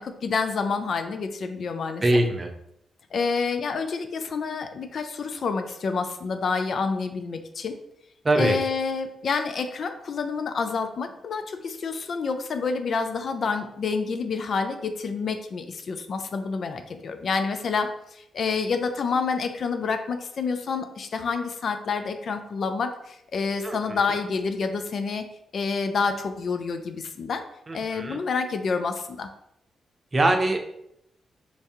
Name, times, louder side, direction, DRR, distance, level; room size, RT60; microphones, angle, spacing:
voice 1, 0.0-2.0 3.1-7.7 8.4-25.3 25.5-27.4 27.7-29.3, left 5 dB, 60° left, 7 dB, 0.4 m, -28 dB
voice 2, 2.0-2.5 8.2-8.6 23.6-24.0 27.7-28.2 30.1-30.6, right 2 dB, 40° right, 5 dB, 0.6 m, -22 dB
3.3 x 2.6 x 3.6 m, 0.78 s
supercardioid pair, 45°, 0 cm